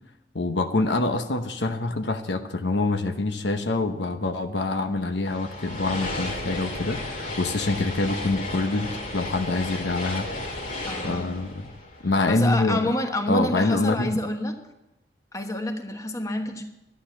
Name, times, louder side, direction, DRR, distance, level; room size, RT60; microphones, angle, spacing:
voice 1, 0.3-10.3 11.0-11.7 12.0-12.8 13.3-14.2, left 2 dB, 90° left, 7 dB, 1.0 m, -25 dB
sound 1, 5.2-12.7, left 2 dB, 50° left, 2.2 m, -34 dB
voice 2, 10.9-11.4 12.3-14.6 15.3-16.6, left 1 dB, 20° left, 5 dB, 1.3 m, -28 dB
11.5 x 9.9 x 7.1 m, 0.90 s
head